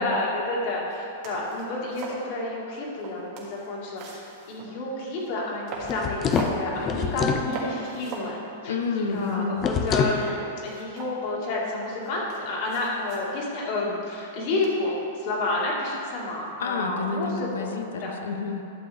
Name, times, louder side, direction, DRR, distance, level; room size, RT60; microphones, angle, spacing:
voice 1, 0.0-4.2 4.5-8.7 9.1-17.7 18.0-18.1, left 2 dB, 45° left, -3 dB, 2.0 m, -30 dB
sound 1, 0.9-1.0 1.2-2.3 2.9-4.8 5.2-5.3 5.7-6.6 7.1-7.3 7.5-8.4 8.7-8.8 9.0-9.8 10.2-11.6 12.0-13.4 14.6-15.0, right 3 dB, 40° right, 1.6 m, -40 dB
sound 2, 5.8-7.5 9.6-10.2, left 6 dB, 20° left, 0.5 m, -25 dB
voice 2, 8.7-9.6 16.6-18.6, left 4 dB, 85° left, 4 dB, 0.8 m, -29 dB
11.5 x 6.8 x 3.5 m, 2.7 s
supercardioid pair, 155°, 0 cm